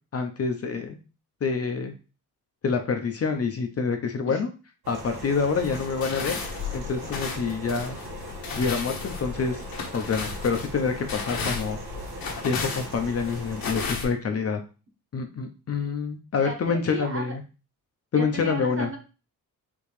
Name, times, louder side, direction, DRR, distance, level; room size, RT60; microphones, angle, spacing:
voice 1, 0.1-1.0 1.4-1.9 2.6-4.5 4.9-6.4 6.7-8.0 8.6-9.6 9.9-11.8 12.4-14.6 15.1-17.4 18.1-18.9, left 5 dB, 45° left, 5 dB, 0.7 m, -27 dB
sound 1, 4.8-13.9, right 1 dB, 85° right, 1.6 m, -39 dB
sound 2, 5.6-14.0, left 5 dB, 75° left, 1.3 m, -34 dB
voice 2, 16.4-17.3 18.1-19.0, right 1 dB, 35° right, 1 dB, 1.3 m, -34 dB
5.2 x 2.9 x 3.2 m, 0.32 s
wide cardioid pair, 145°, 36 cm